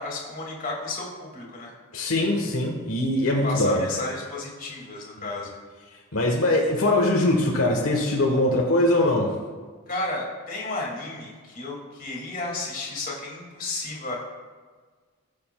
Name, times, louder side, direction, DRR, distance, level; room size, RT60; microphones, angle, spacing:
voice 1, 0.0-1.7 3.4-5.5 9.9-14.2, left 2 dB, 40° left, -2 dB, 2.1 m, -32 dB
voice 2, 1.9-3.9 5.2-5.3 6.1-9.4, left 1 dB, 75° left, 0 dB, 1.2 m, -22 dB
19.5 x 6.8 x 2.3 m, 1.5 s
head